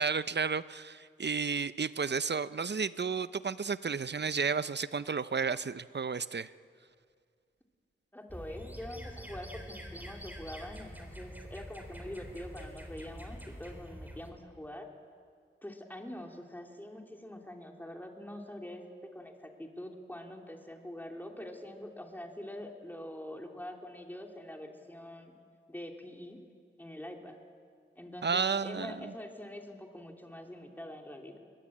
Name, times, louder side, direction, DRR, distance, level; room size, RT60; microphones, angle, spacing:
voice 1, 0.0-6.5 28.2-29.1, right 5 dB, 55° right, 15 dB, 0.7 m, -32 dB
voice 2, 8.1-14.9 15.6-25.3 25.7-26.4 26.8-27.4 27.9-31.4, left 1 dB, 10° left, 2 dB, 3.1 m, -44 dB
sound 1, 8.3-14.3, equal, 10° right, 4.1 m, -46 dB
22.0 x 20.0 x 8.6 m, 2.2 s
cardioid pair, 40°, 21 cm